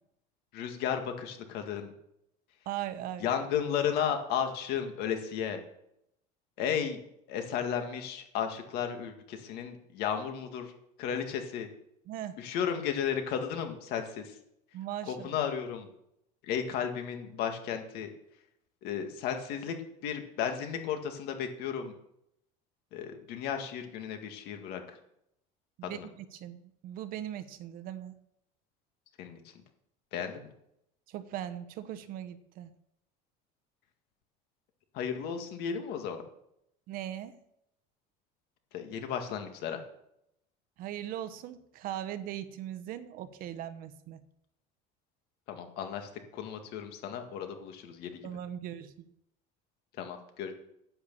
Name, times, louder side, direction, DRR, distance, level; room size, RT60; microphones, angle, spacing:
voice 1, 0.5-1.9 3.2-5.6 6.6-7.0 7.3-10.7 11.0-11.7 12.4-14.4 15.0-15.9 16.4-18.1 18.8-19.8 20.0-21.9 22.9-25.0 25.8-26.1 29.2-29.5 30.1-30.5 34.9-36.2 38.7-39.8 45.5-48.3 50.0-50.5, left 8 dB, 60° left, 5 dB, 2.0 m, -34 dB
voice 2, 2.7-3.3 12.1-12.4 14.7-15.3 25.8-28.2 31.1-32.7 36.9-37.4 40.8-44.2 48.2-49.1, right 11 dB, 50° right, 11 dB, 1.0 m, -39 dB
10.0 x 8.7 x 7.0 m, 0.79 s
cardioid pair, 160°, 19 cm